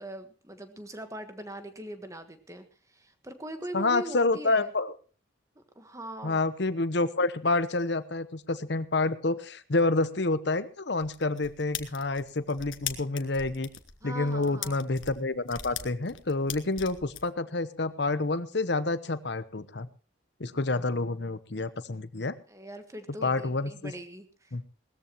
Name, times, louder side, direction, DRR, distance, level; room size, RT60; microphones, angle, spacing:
voice 1, 0.0-4.7 5.5-6.4 14.0-14.8 22.5-24.5, right 1 dB, 15° right, 8 dB, 1.4 m, -41 dB
voice 2, 3.7-4.9 6.2-13.7 14.0-19.9 20.4-22.4 23.2-23.9 24.5-24.6, left 3 dB, 60° left, 14 dB, 0.9 m, -28 dB
sound 1, 11.0-17.2, left 10 dB, 80° left, 1.4 m, -39 dB
19.0 x 14.0 x 3.0 m, 0.37 s
head